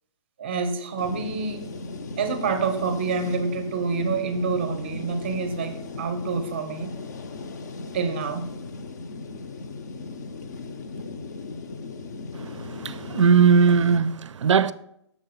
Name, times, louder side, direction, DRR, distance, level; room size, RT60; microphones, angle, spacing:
voice 1, 0.4-1.7 2.2-7.0 7.9-8.5, right 4 dB, 25° right, 0.6 m, -27 dB
sound 1, 1.0-14.0, left 3 dB, 35° left, 0.4 m, -37 dB
voice 2, 12.3-14.7, right 6 dB, 90° right, 0.4 m, -19 dB
6.3 x 3.7 x 5.4 m
hypercardioid pair, 170°, 15 cm